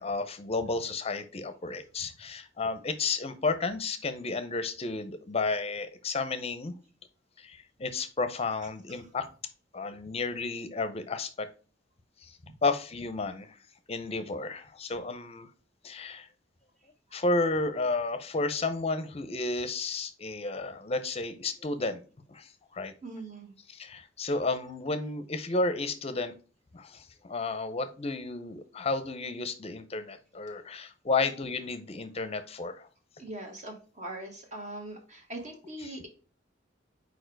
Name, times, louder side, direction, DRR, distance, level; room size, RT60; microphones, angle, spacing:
voice 1, 0.0-6.7 7.4-9.3 9.7-11.5 12.2-13.6 13.9-15.5 15.8-16.3 17.1-22.0 22.3-22.9 23.7-26.3 26.7-32.9 35.8-35.9, left 3 dB, 35° left, 11 dB, 0.6 m, -32 dB
voice 2, 23.0-23.5 33.2-36.1, right 1 dB, 40° right, 2 dB, 1.2 m, -41 dB
4.7 x 4.4 x 4.5 m, 0.38 s
head